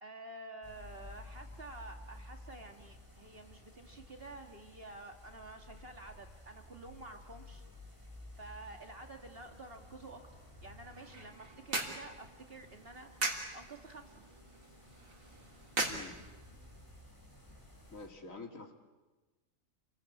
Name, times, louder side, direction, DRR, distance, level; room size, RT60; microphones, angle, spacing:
voice 1, 0.0-7.6 8.3-14.2 18.3-18.6, right 2 dB, 45° right, 4 dB, 2.3 m, -50 dB
sound 1, 0.6-18.1, left 1 dB, 15° left, 5.6 m, -54 dB
sound 2, 10.8-16.8, right 2 dB, 75° right, 3.6 m, -41 dB
voice 2, 17.9-18.7, left 4 dB, 70° left, 4 dB, 3.0 m, -47 dB
29.5 x 22.5 x 8.5 m, 1.2 s
omnidirectional pair, 1.4 m